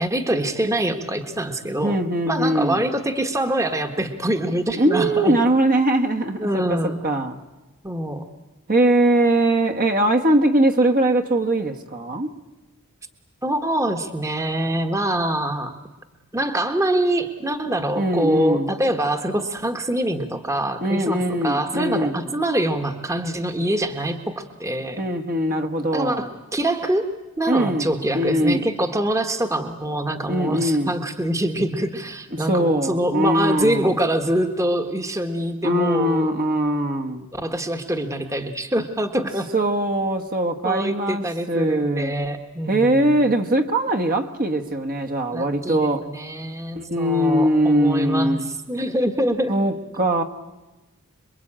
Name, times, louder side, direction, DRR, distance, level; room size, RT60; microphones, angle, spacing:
voice 1, 0.0-5.3 6.4-7.0 7.8-8.3 13.4-15.7 16.3-25.0 25.9-27.1 27.4-36.3 37.3-39.5 40.6-43.3 45.3-49.6, right 1 dB, 15° right, 7 dB, 1.3 m, -24 dB
voice 2, 1.8-2.8 4.8-7.4 8.7-12.3 18.0-18.7 20.8-22.1 25.0-26.3 27.5-27.9 28.1-28.6 30.3-30.9 32.3-33.9 35.6-37.2 39.5-42.1 42.7-46.0 46.7-48.5 49.5-50.2, right 1 dB, 40° right, 5 dB, 1.4 m, -21 dB
27.0 x 22.5 x 8.8 m, 1.1 s
head